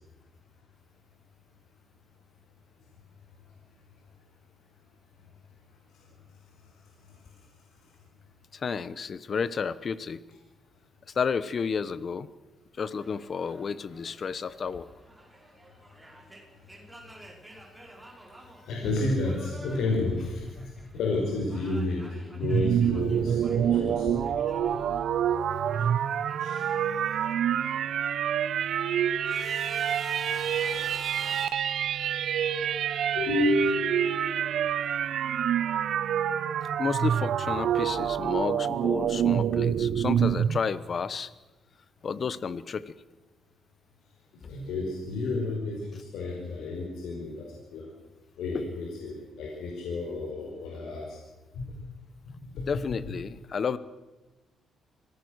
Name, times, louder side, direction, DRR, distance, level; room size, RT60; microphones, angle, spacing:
voice 1, 8.5-10.2 11.1-12.3 12.8-14.9 36.8-41.3 42.0-43.0 52.7-53.8, left 6 dB, 45° left, 16 dB, 1.1 m, -31 dB
sound 1, 12.9-21.0 21.2-25.0 25.3-27.9 28.4-31.5, right 1 dB, 5° right, 5.4 m, -48 dB
voice 2, 18.7-22.0 22.3-24.7 26.4-26.7 33.1-34.4 44.3-47.9 48.4-51.2 51.6-51.8 52.3-53.0, left 2 dB, 80° left, -1 dB, 5.3 m, -31 dB
sound 2, 22.4-40.6, right 9 dB, 65° right, 1.0 m, -27 dB
25.0 x 17.5 x 6.6 m, 1.1 s
cardioid pair, 90°, 0 cm